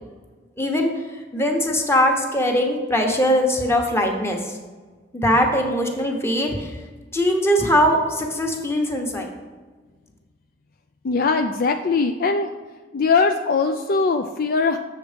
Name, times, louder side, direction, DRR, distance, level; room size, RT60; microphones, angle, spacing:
voice 1, 0.6-0.9 1.3-4.6 5.1-6.8 7.1-9.3, equal, 15° left, 2 dB, 1.2 m, -21 dB
voice 2, 11.0-12.5 12.9-14.8, left 4 dB, 50° left, 6 dB, 0.4 m, -21 dB
7.8 x 7.2 x 5.1 m, 1.4 s
head